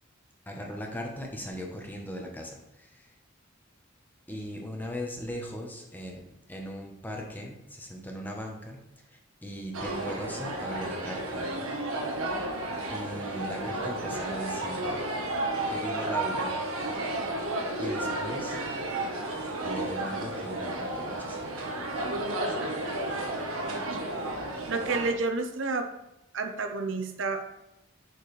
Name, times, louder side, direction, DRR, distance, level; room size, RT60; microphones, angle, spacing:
voice 1, 0.5-3.2 4.3-8.8 9.1-11.5 12.9-15.1 15.7-16.6 17.8-18.6 19.6-21.4, equal, 10° left, 1 dB, 1.0 m, -39 dB
sound 1, 9.7-25.1, right 2 dB, 90° right, 1.2 m, -32 dB
voice 2, 24.7-25.9 26.3-27.5, right 3 dB, 60° right, 6 dB, 0.7 m, -30 dB
6.9 x 6.2 x 3.3 m, 0.93 s
head